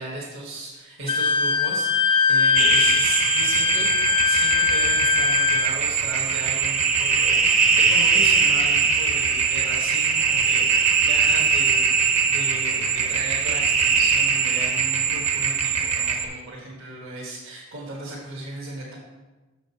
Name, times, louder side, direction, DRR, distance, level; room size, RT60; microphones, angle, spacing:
voice 1, 0.0-3.9 4.2-18.9, right 2 dB, 60° right, -5 dB, 1.6 m, -36 dB
Wind instrument woodwind instrument, 1.1-5.7, left 6 dB, 25° left, 0.3 m, -21 dB
sound 1, 2.6-16.3, right 5 dB, 35° right, 0.8 m, -21 dB
7.1 x 5.1 x 6.0 m, 1.2 s
head